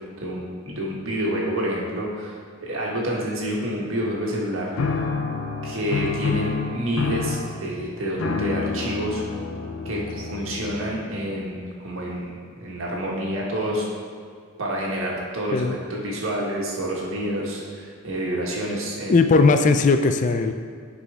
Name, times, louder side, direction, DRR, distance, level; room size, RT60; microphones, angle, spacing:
voice 1, 0.2-4.7 5.6-9.2 9.9-13.9 14.6-19.1, equal, 75° right, -3 dB, 1.7 m, -28 dB
sound 1, 4.8-11.2, left 4 dB, 90° left, 0.7 m, -28 dB
voice 2, 19.1-20.5, left 3 dB, 35° left, 8 dB, 0.4 m, -18 dB
10.0 x 5.0 x 3.6 m, 2.1 s
head